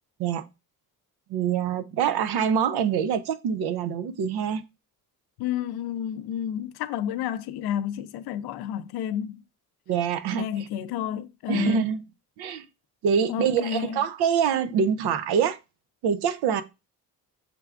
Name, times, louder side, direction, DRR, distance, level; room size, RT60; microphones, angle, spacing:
voice 1, 1.3-4.6 9.9-10.5 11.5-12.0 12.4-12.7 13.0-15.6 16.0-16.6, right 7 dB, 85° right, 0.6 m, -25 dB
voice 2, 5.4-9.4 10.3-11.9 13.3-14.0, left 10 dB, 85° left, 0.5 m, -30 dB
5.9 x 3.4 x 2.4 m
cardioid pair, 165°, 38 cm